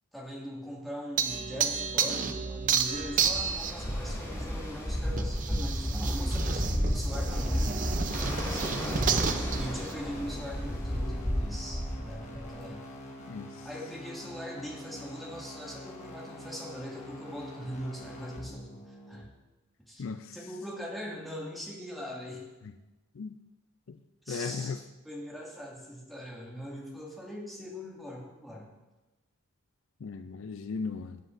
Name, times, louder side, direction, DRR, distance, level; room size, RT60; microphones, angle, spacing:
voice 1, 0.1-12.9 13.6-19.3 19.9-20.0 20.3-22.5 24.2-24.8 25.0-28.7, equal, ahead, -5 dB, 2.0 m, -41 dB
sound 1, 1.2-3.9 5.2-9.9, right 7 dB, 40° right, 0.5 m, -31 dB
Ocean, 2.8-12.6, equal, 15° left, 2.2 m, -32 dB
sound 2, 7.3-19.2, left 1 dB, 35° left, 1.3 m, -45 dB
voice 2, 13.3-13.7 20.0-20.4 23.2-23.3 23.9-24.0 24.3-24.8 30.0-31.2, left 5 dB, 70° left, 10 dB, 0.4 m, -36 dB
17.0 x 7.4 x 2.6 m, 1.1 s
head